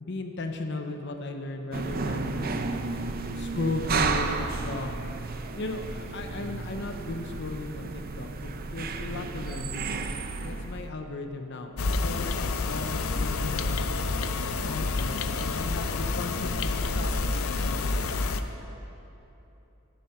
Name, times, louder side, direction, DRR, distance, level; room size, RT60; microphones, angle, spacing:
voice 1, 0.0-2.6 3.3-4.9 5.5-10.0 10.4-13.8 14.6-18.0, left 2 dB, 55° left, 5 dB, 0.7 m, -36 dB
sound 1, 1.7-10.9, right 4 dB, 45° right, 0.6 m, -32 dB
sound 2, 11.8-18.4, left 3 dB, 90° left, 0.6 m, -28 dB
13.0 x 11.5 x 4.3 m, 3.0 s
head